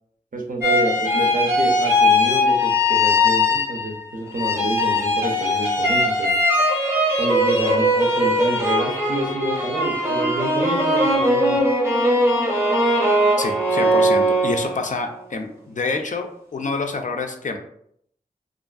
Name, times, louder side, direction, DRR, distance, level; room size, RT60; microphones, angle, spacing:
voice 1, 0.3-6.3 7.2-11.6, right 2 dB, 60° right, 2 dB, 0.6 m, -28 dB
sound 1, 0.6-4.0 4.4-15.0, left 1 dB, 15° right, 0.7 m, -20 dB
voice 2, 13.4-16.3 16.5-17.6, left 3 dB, 50° left, 5 dB, 0.4 m, -27 dB
2.5 x 2.4 x 2.3 m, 0.69 s
wide cardioid pair, 50°, 16 cm